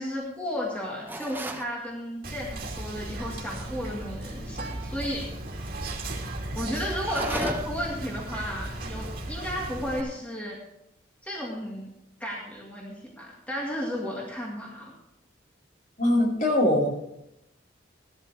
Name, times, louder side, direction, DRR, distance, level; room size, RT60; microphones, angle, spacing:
voice 1, 0.0-5.3 6.5-10.6 11.2-11.9 12.2-14.9, equal, 10° left, -4 dB, 2.1 m, -33 dB
sound 1, 1.1-1.7 7.0-7.9, right 1 dB, 10° right, 0.9 m, -34 dB
Whispering, 2.2-10.0, right 1 dB, 50° right, 2.6 m, -36 dB
voice 2, 16.0-16.9, left 1 dB, 45° left, -4 dB, 4.7 m, -22 dB
16.5 x 12.5 x 3.5 m, 0.83 s
head